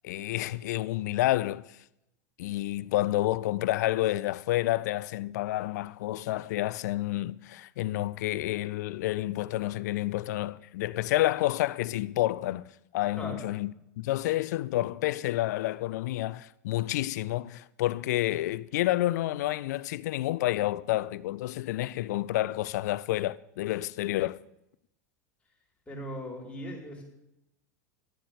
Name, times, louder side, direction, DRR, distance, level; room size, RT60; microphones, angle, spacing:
voice 1, 0.0-1.6 2.4-12.6 12.9-13.7 14.0-24.4, left 16 dB, 70° left, 0.4 m, -29 dB
voice 2, 25.9-27.0, equal, 10° left, 3.9 m, -38 dB
11.5 x 7.6 x 6.3 m
hypercardioid pair, 90°, 10 cm